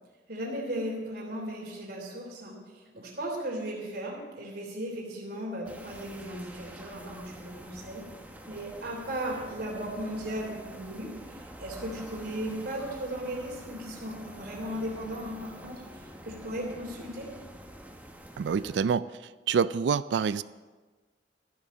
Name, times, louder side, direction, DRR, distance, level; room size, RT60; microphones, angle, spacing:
voice 1, 0.3-8.0 8.5-17.3, right 1 dB, 60° right, -2 dB, 3.3 m, -36 dB
sound 1, 5.6-18.8, right 1 dB, 10° right, 0.9 m, -47 dB
voice 2, 18.4-19.1 19.5-20.4, right 6 dB, 80° right, 16 dB, 0.4 m, -26 dB
14.0 x 6.9 x 7.2 m, 1.3 s
head